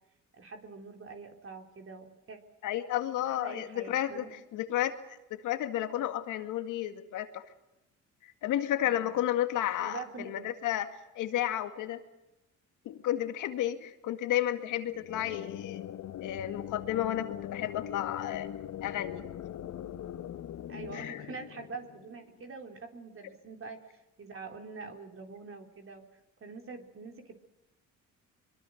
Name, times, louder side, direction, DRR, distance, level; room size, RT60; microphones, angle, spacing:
voice 1, 0.3-2.4 3.4-4.3 8.8-9.1 9.8-10.5 15.1-15.5 20.7-26.0 26.4-27.3, right 4 dB, 45° right, 3 dB, 3.9 m, -45 dB
voice 2, 2.6-5.0 5.3-7.4 8.2-12.0 12.9-15.8 16.2-18.5 18.8-19.3 20.9-21.2, left 12 dB, 90° left, 8 dB, 2.1 m, -32 dB
sound 1, 14.8-22.5, left 11 dB, 65° left, 1.1 m, -42 dB
25.0 x 23.0 x 6.6 m, 0.94 s
cardioid pair, 90°, 30 cm